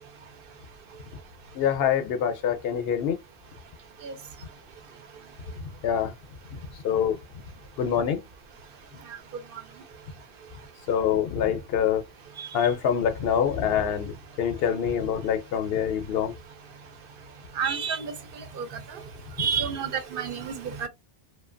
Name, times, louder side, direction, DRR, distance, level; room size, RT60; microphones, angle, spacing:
voice 1, 1.5-3.2 5.8-6.1 6.8-7.2 7.8-8.2 10.9-12.0 12.5-16.3, left 8 dB, 75° left, 0.8 m, -25 dB
voice 2, 17.6-18.1 18.6-18.7 19.4-20.9, right 7 dB, 65° right, 0.7 m, -29 dB
2.7 x 2.2 x 2.5 m
omnidirectional pair, 1.0 m